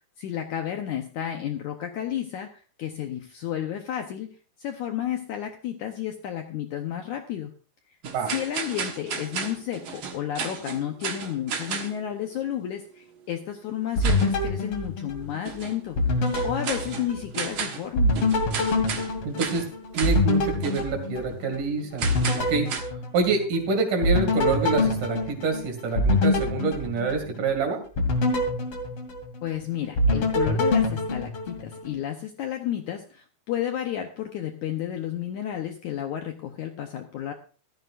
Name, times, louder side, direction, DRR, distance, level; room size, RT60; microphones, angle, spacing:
voice 1, 0.2-4.3 4.6-7.5 8.3-18.2 29.4-37.3, left 10 dB, 80° left, 4 dB, 1.8 m, -32 dB
sound 1, 8.0-12.0 14.0-14.3 15.5-15.8 16.3-17.9 18.1-19.1 19.4-19.7 19.9-20.2 20.6-20.9 22.0-22.8, right 6 dB, 85° right, 1.1 m, -33 dB
sound 2, 14.0-15.6 16.0-17.6 18.0-21.6 22.0-23.6 24.0-27.5 28.0-29.6 30.0-31.9, left 2 dB, 40° left, 2.6 m, -25 dB
voice 2, 19.2-19.6 19.9-22.1 22.4-22.7 23.1-27.8, right 4 dB, 55° right, 4 dB, 3.8 m, -26 dB
16.0 x 13.5 x 2.5 m, 0.38 s
omnidirectional pair, 4.6 m